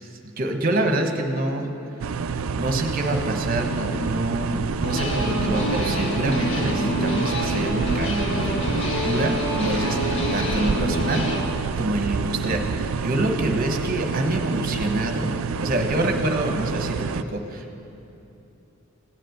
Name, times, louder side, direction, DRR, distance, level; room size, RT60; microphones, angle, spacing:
voice 1, 0.4-1.7 2.5-11.5 11.8-15.3 15.6-17.8, right 1 dB, 40° right, 4 dB, 1.2 m, -26 dB
sound 1, 2.0-17.2, right 5 dB, 65° right, 0.4 m, -28 dB
sound 2, 4.8-11.4, equal, 60° left, 1.8 m, -27 dB
16.0 x 7.6 x 8.0 m, 2.9 s
head